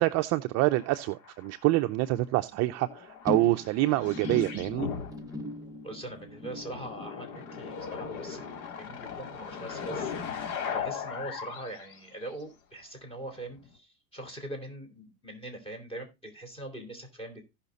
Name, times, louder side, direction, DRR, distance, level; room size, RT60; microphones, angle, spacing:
voice 1, 0.0-4.9, right 18 dB, 40° right, 0.5 m, -26 dB
sound 1, 0.6-2.1 2.4-5.7 6.4-12.3 13.6-13.7, left 7 dB, 80° left, 2.9 m, -38 dB
sound 2, 3.3-9.9 10.1-10.5 10.9-11.0, left 2 dB, 10° right, 1.0 m, -40 dB
voice 2, 5.8-17.4, right 1 dB, 15° left, 3.8 m, -42 dB
16.0 x 5.8 x 4.0 m
supercardioid pair, 130°, 43 cm